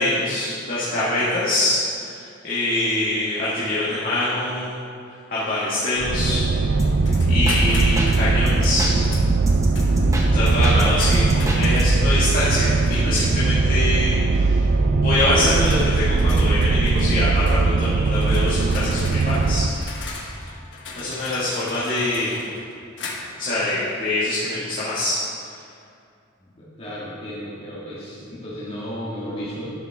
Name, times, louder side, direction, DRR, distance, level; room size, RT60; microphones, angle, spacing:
voice 1, 0.0-4.8 5.3-6.8 7.3-8.9 10.3-14.6 15.0-19.6 21.0-22.4 23.4-25.2, left 1 dB, 45° left, -10 dB, 1.8 m, -24 dB
sound 1, 6.0-19.7, right 3 dB, 60° right, 0.4 m, -20 dB
sound 2, 6.8-8.2 8.5-10.8 11.1-12.1, equal, 15° right, 0.8 m, -25 dB
sound 3, 7.0-8.3 9.0-9.3 9.7-11.9 12.8-13.3 14.3-14.5 15.2-23.5, left 3 dB, 65° left, 1.1 m, -39 dB
voice 2, 20.9-21.5 26.4-29.7, equal, 30° left, -8 dB, 1.7 m, -35 dB
11.0 x 7.1 x 3.5 m, 2.4 s
head